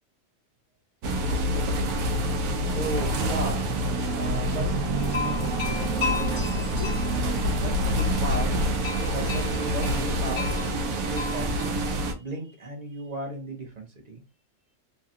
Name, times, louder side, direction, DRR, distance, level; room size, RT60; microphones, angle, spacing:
sound 1, 1.0-12.1, right 1 dB, 80° right, 1.1 m, -26 dB
voice 1, 2.7-3.6 4.1-4.7 6.7-7.1 7.6-8.5 9.0-9.9 10.2-10.8 11.1-11.5 12.2-14.2, right 2 dB, 35° right, 0 dB, 0.9 m, -35 dB
sound 2, 5.0-11.7, left 4 dB, 40° left, 1.2 m, -36 dB
3.2 x 2.3 x 2.7 m, 0.27 s
omnidirectional pair, 1.5 m